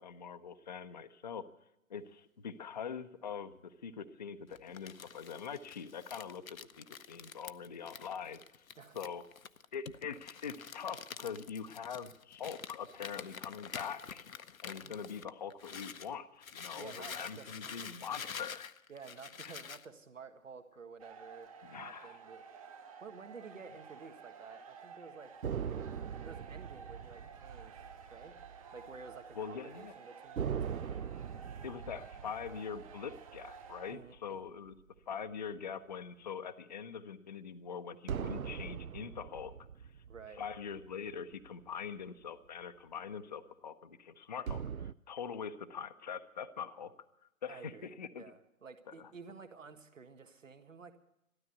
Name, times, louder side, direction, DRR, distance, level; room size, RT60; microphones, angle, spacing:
voice 1, 0.0-1.4 1.9-8.6 8.9-9.2 9.7-14.2 14.6-18.7 19.4-19.5 21.6-22.2 29.4-29.9 31.6-34.8 35.1-39.5 40.3-46.9 47.4-48.3 48.9-49.1, left 7 dB, 30° left, 10 dB, 0.6 m, -43 dB
Crumpling crinkling, 4.5-16.1 16.4-19.9, left 6 dB, 75° left, 0.8 m, -48 dB
voice 2, 16.7-17.9 18.9-21.5 21.8-22.4 23.0-25.3 26.2-27.8 28.1-28.3 28.7-30.8 33.9-34.5 40.1-40.7 47.5-47.9 48.2-51.0, right 5 dB, 65° right, 7 dB, 1.8 m, -52 dB
sound 1, 21.0-33.9, right 6 dB, 25° right, 1.0 m, -53 dB
sound 2, 25.4-29.2 29.4-29.6 30.4-35.0 38.1-41.7 44.5-44.9, right 7 dB, 80° right, 0.6 m, -41 dB
13.0 x 13.0 x 8.1 m, 0.84 s
figure-of-eight pair, 135°, 42 cm